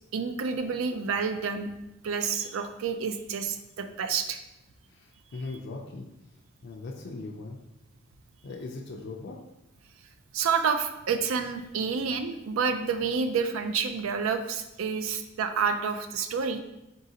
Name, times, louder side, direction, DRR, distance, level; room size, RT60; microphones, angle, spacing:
voice 1, 0.1-1.7 2.0-4.4 10.3-16.6, right 5 dB, 85° right, 8 dB, 0.4 m, -29 dB
voice 2, 4.9-6.1 6.6-7.6 8.4-9.4 15.0-15.1, left 3 dB, 55° left, 0 dB, 0.4 m, -39 dB
4.0 x 3.7 x 2.7 m, 0.93 s
head